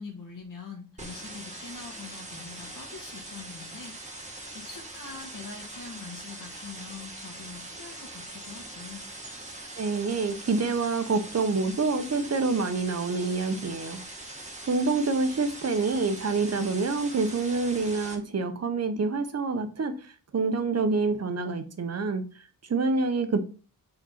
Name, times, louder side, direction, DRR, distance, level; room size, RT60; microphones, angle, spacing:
voice 1, 0.0-9.0, left 5 dB, 70° left, 1.5 m, -44 dB
sound 1, 1.0-18.2, right 2 dB, 20° right, 1.4 m, -42 dB
voice 2, 9.8-14.0 14.7-23.5, right 3 dB, 45° right, 0.9 m, -27 dB
5.1 x 4.2 x 5.7 m
wide cardioid pair, 140°, 34 cm